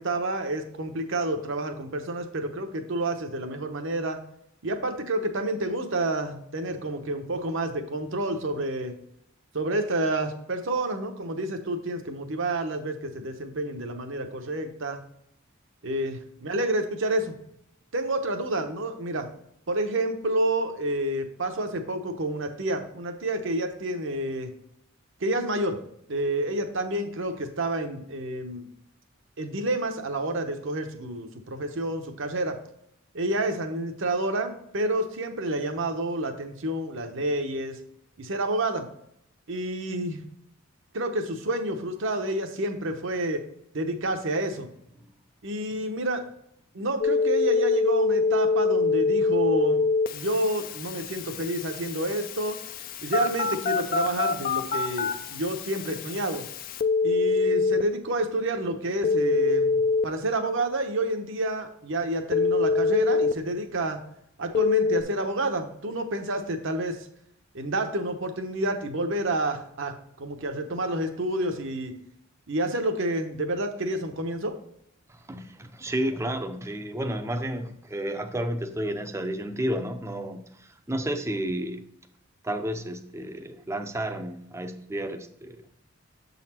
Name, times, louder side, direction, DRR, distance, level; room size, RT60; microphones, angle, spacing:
voice 1, 0.0-4.2 4.6-9.0 9.5-15.0 15.8-17.3 17.9-19.3 19.7-24.5 25.2-25.8 26.1-28.7 29.4-32.6 33.1-37.8 38.2-38.9 39.5-40.2 40.9-43.4 43.7-44.7 45.4-46.3 46.7-49.9 50.1-52.6 53.0-56.5 57.0-64.0 64.4-67.0 67.5-72.0 72.5-74.6, right 1 dB, 65° right, 6 dB, 0.9 m, -29 dB
Telephone, 47.0-57.8 59.0-60.0 62.3-63.3 64.5-65.0, left 4 dB, 45° left, 0.4 m, -25 dB
voice 2, 75.1-81.8 82.4-85.6, right 1 dB, 15° right, 7 dB, 0.5 m, -31 dB
7.3 x 4.1 x 4.3 m, 0.74 s
head